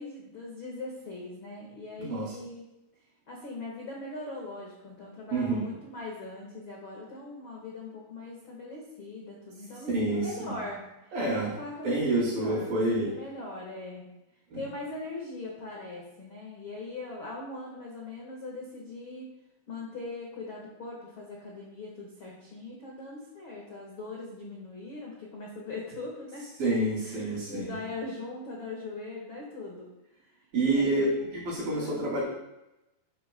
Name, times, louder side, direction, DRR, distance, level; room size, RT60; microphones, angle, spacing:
voice 1, 0.0-2.6 3.3-10.9 11.3-14.0 14.5-19.3 19.7-26.4 27.0-29.9 30.2-31.2 31.6-32.2, left 2 dB, 55° left, -2 dB, 1.4 m, -41 dB
voice 2, 2.0-2.3 5.3-5.7 9.9-10.6 11.1-11.6 11.8-13.1 14.5-14.6 26.6-27.8 30.5-31.1 31.3-32.2, right 2 dB, 60° right, -7 dB, 4.2 m, -28 dB
11.5 x 11.5 x 2.3 m, 0.93 s
omnidirectional pair, 4.8 m